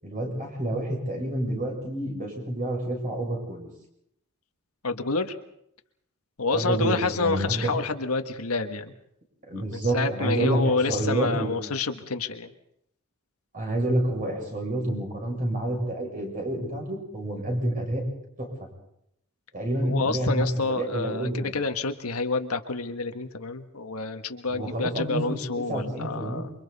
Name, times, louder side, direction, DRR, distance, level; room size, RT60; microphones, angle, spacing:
voice 1, 0.0-3.7 6.5-7.8 9.5-11.5 13.5-18.0 18.4-18.5 19.5-21.5 24.5-25.3 25.6-26.5, right 1 dB, 40° right, 0 dB, 7.1 m, -28 dB
voice 2, 4.8-5.3 6.4-8.9 9.6-12.5 19.8-26.5, left 3 dB, 80° left, 7 dB, 1.5 m, -28 dB
28.5 x 24.5 x 4.2 m, 0.75 s
head